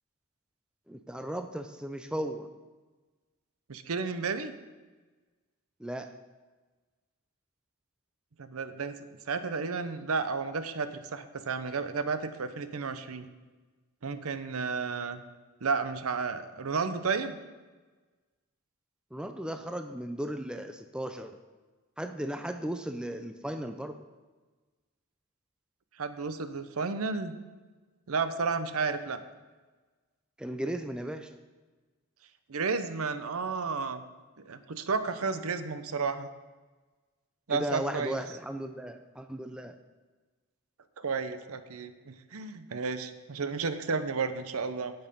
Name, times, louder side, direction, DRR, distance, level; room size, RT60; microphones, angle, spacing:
voice 1, 0.9-2.5 5.8-6.1 19.1-21.4 22.0-24.0 30.4-31.4 37.5-39.7, right 1 dB, 5° right, 7 dB, 0.4 m, -36 dB
voice 2, 3.7-4.5 8.4-13.2 14.0-15.2 15.6-17.4 26.0-27.4 28.1-29.2 32.5-34.0 34.5-36.3 37.5-38.2 41.0-44.9, right 4 dB, 80° right, 11 dB, 0.7 m, -32 dB
8.5 x 8.0 x 5.4 m, 1.3 s
head